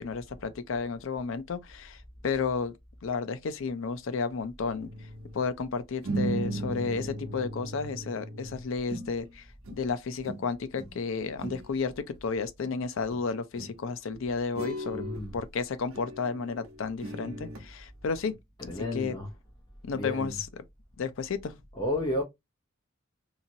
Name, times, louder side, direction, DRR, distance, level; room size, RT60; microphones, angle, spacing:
voice 1, 0.0-2.8 3.0-4.9 5.3-15.1 15.3-18.4 18.6-19.2 19.8-20.6 21.0-21.6, left 5 dB, 65° left, 0.4 m, -32 dB
sound 1, 4.8-5.4 6.0-9.4 9.6-10.0 10.2-11.0 11.3-11.7 12.6-12.7 13.1-13.3 13.6-13.8 14.6-15.3 15.9-17.7 18.2-18.3, right 1 dB, 75° right, 0.8 m, -37 dB
voice 2, 14.9-15.4 18.6-19.3 19.9-20.4 21.7-22.2, left 1 dB, 20° left, 0.6 m, -32 dB
2.9 x 2.8 x 2.6 m
head